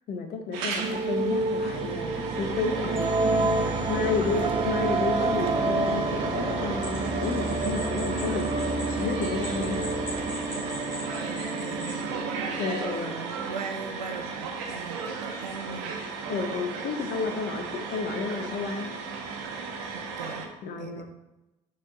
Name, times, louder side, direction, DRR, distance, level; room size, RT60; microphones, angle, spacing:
voice 1, 0.1-3.4 3.9-8.5 9.0-9.8 12.6-13.1 16.3-18.9 20.6-21.0, left 4 dB, 50° left, 5 dB, 0.9 m, -31 dB
sound 1, 0.5-20.5, right 5 dB, 65° right, 0.8 m, -36 dB
sound 2, 0.7-13.7, right 2 dB, 25° right, 0.8 m, -29 dB
sound 3, 6.8-12.0, left 2 dB, 70° left, 1.7 m, -42 dB
voice 2, 11.2-12.1 13.0-16.0 19.9-20.4 20.8-21.0, right 5 dB, 85° right, 6 dB, 0.5 m, -39 dB
6.5 x 3.3 x 5.4 m, 0.99 s
figure-of-eight pair, 50°, 21 cm